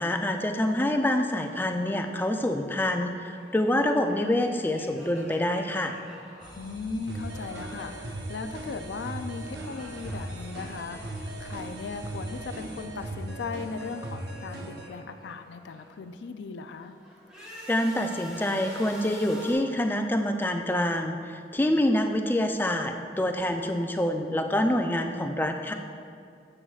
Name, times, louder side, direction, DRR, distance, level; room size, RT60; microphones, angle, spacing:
voice 1, 0.0-5.9 17.7-25.7, left 1 dB, 10° left, 5 dB, 0.4 m, -26 dB
sound 1, 1.0-9.0 9.3-13.0 13.3-16.0 16.5-19.5, equal, 5° right, 1.7 m, -49 dB
sound 2, 6.4-12.9, right 1 dB, 25° right, 1.1 m, -47 dB
voice 2, 6.6-16.9 25.0-25.1, left 4 dB, 90° left, 8 dB, 0.4 m, -38 dB
sound 3, 7.1-14.9, right 1 dB, 70° right, 0.8 m, -38 dB
9.9 x 7.7 x 2.4 m, 2.4 s
head